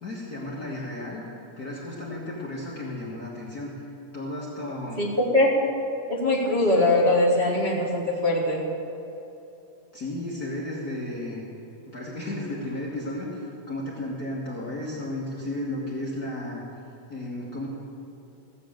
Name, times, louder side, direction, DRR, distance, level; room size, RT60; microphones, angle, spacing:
voice 1, 0.0-1.2 1.6-3.7 4.1-5.1 9.9-11.5 11.9-13.4 13.7-16.6 17.1-17.7, left 1 dB, 40° left, -5 dB, 1.6 m, -33 dB
voice 2, 6.1-8.6, left 2 dB, 25° right, -7 dB, 1.7 m, -21 dB
16.0 x 7.7 x 7.3 m, 2.9 s
omnidirectional pair, 3.3 m